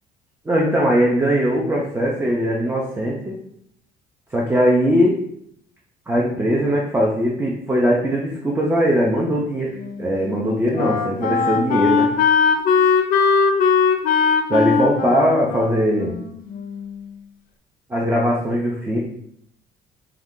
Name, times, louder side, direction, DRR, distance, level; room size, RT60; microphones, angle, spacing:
voice 1, 0.5-3.4 4.3-5.2 6.1-12.1 14.5-16.2 17.9-19.0, equal, 15° right, -3 dB, 0.4 m, -20 dB
Wind instrument woodwind instrument, 9.8-17.1, left 5 dB, 55° left, 0.4 m, -20 dB
2.4 x 2.2 x 3.5 m, 0.71 s
cardioid pair, 110°, 17 cm